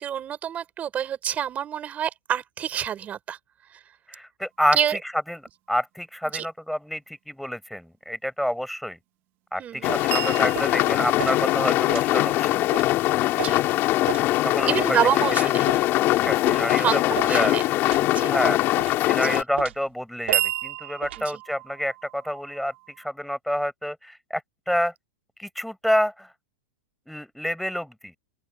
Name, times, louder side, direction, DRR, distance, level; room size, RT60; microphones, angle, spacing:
voice 1, 0.0-3.4 4.7-5.0 6.3-6.5 9.6-9.9 13.4-13.6 14.7-15.7 16.8-18.3 19.2-19.4 21.2-21.4, right 9 dB, 25° right, 6.4 m, -27 dB
voice 2, 4.1-5.0 5.3-5.4 5.7-9.0 9.5-12.8 14.4-15.0 15.4-15.5 16.2-17.6 18.3-18.6 19.1-24.4 24.7-24.9 25.4-26.3 27.1-28.1, equal, ahead, 7.0 m, -28 dB
sound 1, 9.8-19.4, left 16 dB, 35° left, 4.3 m, -22 dB
sound 2, 9.9-10.1 10.5-10.8 11.2-11.4 11.9-12.1 12.7-12.9 13.4-13.6 14.1-14.3 14.8-15.0 15.7-15.9 16.5-16.7 17.1-17.4 17.9-18.1 18.8-19.0 19.6-19.8 20.3-20.4 21.0-21.2, right 12 dB, 80° right, 3.3 m, -34 dB
sound 3, 10.1-14.1 20.3-23.1, right 16 dB, 40° right, 2.1 m, -33 dB
open air
hypercardioid pair, 140°, 6 cm